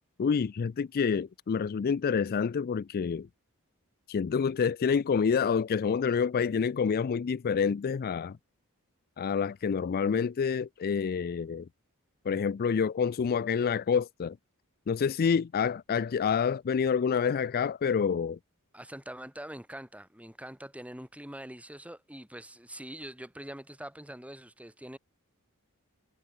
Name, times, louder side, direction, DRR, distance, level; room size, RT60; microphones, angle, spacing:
voice 1, 0.2-3.3 4.1-8.4 9.2-11.7 12.3-14.4 14.9-18.4, left 6 dB, 45° left, 0.4 m, -28 dB
voice 2, 18.7-25.0, right 1 dB, 5° right, 6.5 m, -44 dB
head